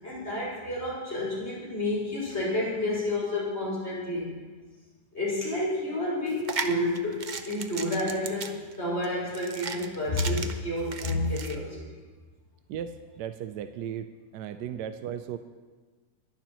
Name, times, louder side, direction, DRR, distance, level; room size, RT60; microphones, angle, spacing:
voice 1, 0.0-4.3 5.1-11.8, left 1 dB, 35° left, -7 dB, 6.0 m, -30 dB
sound 1, 6.3-11.5, right 5 dB, 60° right, 0.4 m, -36 dB
voice 2, 12.7-14.1 14.3-15.4, right 9 dB, 80° right, 9 dB, 1.2 m, -36 dB
22.5 x 11.5 x 3.0 m, 1.4 s
omnidirectional pair, 1.8 m